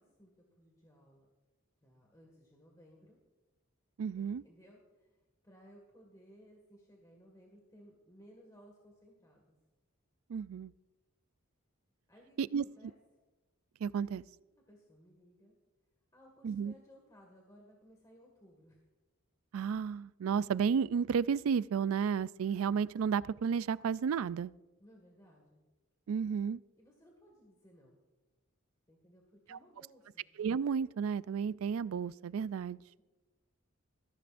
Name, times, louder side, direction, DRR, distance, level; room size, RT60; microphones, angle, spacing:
voice 1, 0.0-1.3 1.8-3.2 4.2-9.5 12.1-13.0 14.7-15.6 16.1-18.8 24.8-25.6 26.8-28.0 28.9-30.3, equal, 15° left, 0 dB, 1.8 m, -60 dB
voice 2, 4.0-4.4 10.3-10.7 12.4-12.6 13.8-14.2 16.4-16.7 19.5-24.5 26.1-26.6 29.5-29.6 30.4-32.8, right 6 dB, 80° right, 19 dB, 0.3 m, -32 dB
21.0 x 14.5 x 2.5 m, 1.2 s
head